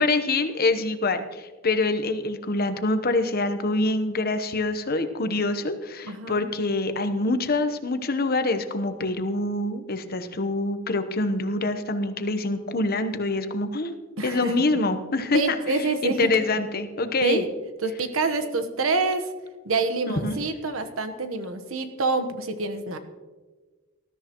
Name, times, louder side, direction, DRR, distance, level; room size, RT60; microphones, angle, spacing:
voice 1, 0.0-13.9 14.2-17.4 20.1-20.4, left 2 dB, 50° left, 9 dB, 1.0 m, -25 dB
voice 2, 6.0-6.5 14.2-14.5 15.3-16.3 17.2-17.5 17.8-19.3 19.6-23.0, right 3 dB, 80° right, 9 dB, 1.2 m, -26 dB
19.5 x 13.0 x 3.0 m, 1.3 s
head